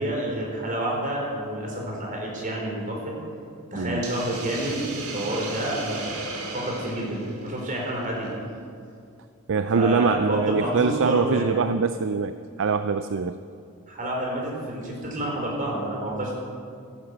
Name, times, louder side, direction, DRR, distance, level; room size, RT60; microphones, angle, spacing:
voice 1, 0.0-3.1 3.7-6.1 6.5-8.3 9.7-11.6 13.9-16.4, right 1 dB, 40° right, -1 dB, 4.3 m, -29 dB
Hiss, 4.0-8.3, right 3 dB, 85° right, 2.6 m, -36 dB
voice 2, 9.5-12.3 12.6-13.4, right 5 dB, 60° right, 10 dB, 0.5 m, -23 dB
14.5 x 11.0 x 8.0 m, 2.3 s
head